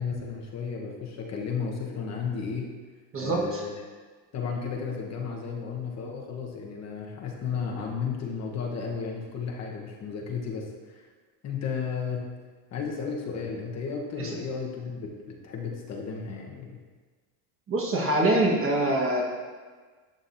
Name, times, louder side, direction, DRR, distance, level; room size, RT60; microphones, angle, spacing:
voice 1, 0.0-2.8 3.2-3.7 4.3-11.1 11.4-12.3 12.7-16.8, left 5 dB, 40° left, 0 dB, 1.1 m, -33 dB
voice 2, 3.1-3.6 14.2-14.4 17.7-19.2, right 1 dB, 30° right, 0 dB, 1.3 m, -24 dB
11.5 x 5.1 x 2.6 m, 1.5 s
supercardioid pair, 120°, 41 cm